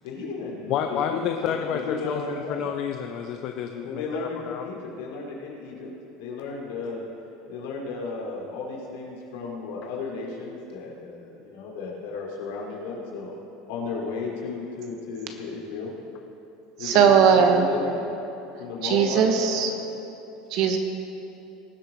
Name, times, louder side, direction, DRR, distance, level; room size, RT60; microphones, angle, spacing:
voice 1, 0.0-1.2 1.7-2.7 3.8-5.9 6.2-7.0 7.5-13.3 13.7-15.9 16.8-18.0 18.6-19.8, left 4 dB, 80° left, -3 dB, 3.2 m, -34 dB
voice 2, 0.7-4.7, left 8 dB, 45° left, 5 dB, 0.6 m, -29 dB
voice 3, 16.8-17.7 18.8-19.7 20.5-20.8, right 7 dB, 50° right, 5 dB, 1.3 m, -19 dB
19.0 x 7.8 x 4.5 m, 2.9 s
supercardioid pair, 160°, 0 cm